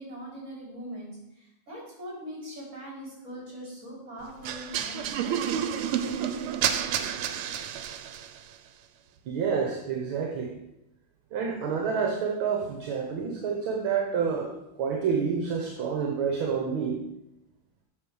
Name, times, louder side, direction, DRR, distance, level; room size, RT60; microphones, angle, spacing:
voice 1, 0.0-5.3, equal, 30° right, -4 dB, 4.6 m, -41 dB
sound 1, 4.4-8.4, right 9 dB, 85° right, 1.6 m, -30 dB
voice 2, 9.3-10.6 11.3-17.0, right 6 dB, 70° right, 2 dB, 1.8 m, -28 dB
8.1 x 6.5 x 6.4 m, 0.86 s
omnidirectional pair, 2.4 m